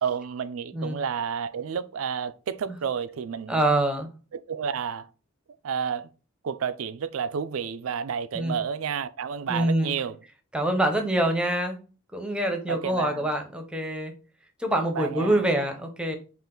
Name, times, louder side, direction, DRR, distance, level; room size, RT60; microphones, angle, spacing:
voice 1, 0.0-3.6 4.3-5.1 5.6-6.1 6.4-10.2 12.7-13.3 14.9-15.5, right 7 dB, 80° right, 0.4 m, -31 dB
voice 2, 3.5-4.1 8.3-8.5 9.5-9.9 10.5-11.8 12.1-14.1 14.6-16.2, right 1 dB, 5° right, 0.7 m, -25 dB
5.6 x 2.5 x 3.8 m
head